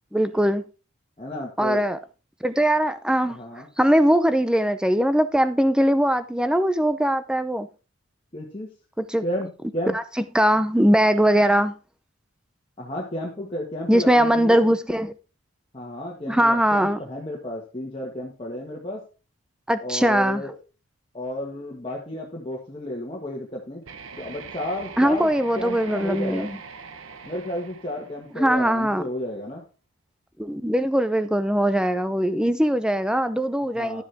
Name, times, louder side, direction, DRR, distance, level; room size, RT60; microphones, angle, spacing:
voice 1, 0.1-0.6 1.6-2.0 2.4-3.4 3.8-7.7 9.0-9.2 9.9-10.0 10.3-11.7 13.9-15.1 16.3-17.0 19.7-20.4 25.0-26.6 28.3-29.0 30.4-34.0, equal, 5° right, 0.5 m, -21 dB
voice 2, 1.2-1.8 3.3-3.7 8.3-8.7 9.2-9.9 12.8-14.7 15.7-19.0 19.8-20.5 21.1-23.8 24.2-25.3 25.5-26.6 27.2-29.6 33.7-34.0, left 1 dB, 25° left, 1.6 m, -32 dB
sound 1, 23.8-28.8, right 4 dB, 80° right, 1.1 m, -41 dB
12.0 x 7.5 x 3.5 m
head